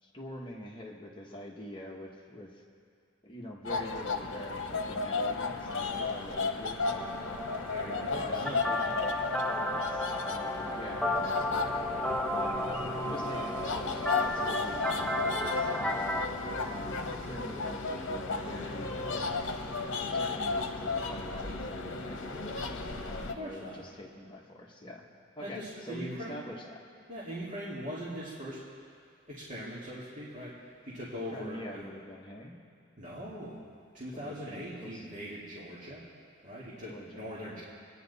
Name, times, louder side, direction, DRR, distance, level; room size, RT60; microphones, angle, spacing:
voice 1, 0.0-2.6 3.2-7.3 7.8-11.9 12.3-12.7 13.1-16.2 16.7-19.5 20.1-22.6 23.0-25.0 25.4-26.6 31.3-32.5 34.1-35.0 36.9-37.2, left 1 dB, 25° left, -1 dB, 1.2 m, -45 dB
sound 1, 3.6-23.3, left 3 dB, 65° left, 1.0 m, -34 dB
sound 2, 6.8-16.3, left 1 dB, 5° left, 0.5 m, -33 dB
voice 2, 7.6-8.6 23.2-23.8 25.4-26.5 27.1-28.6 29.3-31.9 33.0-33.6 33.9-36.0 36.4-37.6, equal, 35° right, -9 dB, 2.1 m, -41 dB
24.5 x 9.9 x 4.1 m, 2.2 s
head